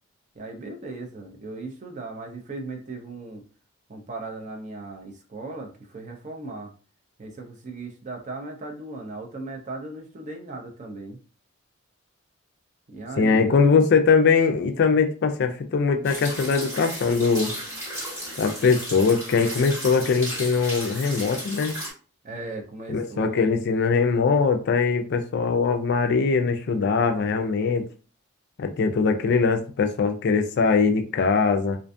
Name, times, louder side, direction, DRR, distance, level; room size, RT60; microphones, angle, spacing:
voice 1, 0.3-3.4 3.9-6.7 7.2-11.2 12.9-13.9 22.2-23.5, right 2 dB, 35° right, 2 dB, 0.5 m, -37 dB
voice 2, 13.2-17.5 18.4-21.7 22.9-27.8 28.6-31.8, left 5 dB, 50° left, 7 dB, 0.3 m, -21 dB
sound 1, 16.0-21.9, equal, 15° right, 1.0 m, -34 dB
2.4 x 2.3 x 2.5 m, 0.37 s
head